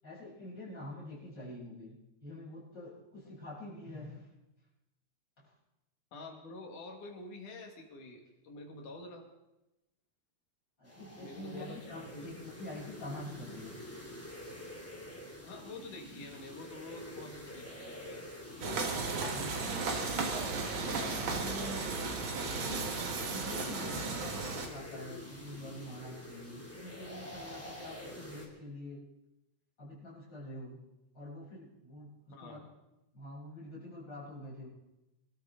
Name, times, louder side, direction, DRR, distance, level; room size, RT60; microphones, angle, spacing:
voice 1, 0.0-4.3 5.4-5.5 10.8-13.8 18.9-21.9 22.7-23.0 23.3-29.0 29.8-30.8 31.1-32.7 33.1-34.7, left 1 dB, 35° left, -8 dB, 8.7 m, -46 dB
voice 2, 6.1-9.2 11.1-12.3 15.4-18.3 32.3-32.7, left 2 dB, 75° left, 2 dB, 3.8 m, -47 dB
sound 1, 10.8-28.5, left 1 dB, 5° left, 2.6 m, -48 dB
City Ambience, 18.6-24.7, right 4 dB, 45° right, 2.1 m, -35 dB
25.5 x 13.0 x 3.8 m, 0.94 s
omnidirectional pair, 3.5 m